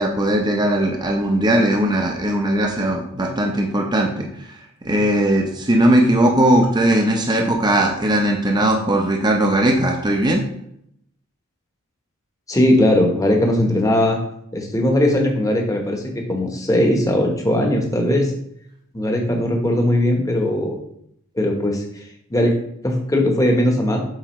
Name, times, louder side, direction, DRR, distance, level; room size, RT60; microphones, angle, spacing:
voice 1, 0.0-4.3 4.8-10.4, right 1 dB, 20° right, 1 dB, 0.7 m, -18 dB
voice 2, 12.5-14.2 14.5-18.3 18.9-20.8 21.4-22.0 22.3-22.5 22.8-24.0, left 1 dB, 15° left, 1 dB, 1.1 m, -19 dB
7.6 x 4.8 x 3.1 m, 0.73 s
head